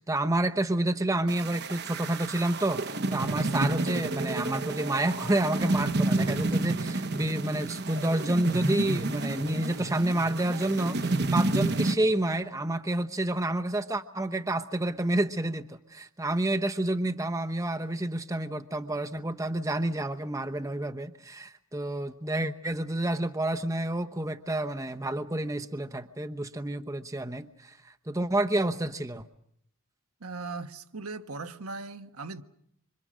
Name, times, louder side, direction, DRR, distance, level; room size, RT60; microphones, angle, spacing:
voice 1, 0.0-29.3, right 1 dB, 15° right, 0.9 m, -29 dB
sound 1, 1.3-11.9, right 2 dB, 50° right, 1.1 m, -30 dB
voice 2, 30.2-32.4, right 3 dB, 85° right, 1.4 m, -38 dB
26.5 x 26.0 x 6.3 m
head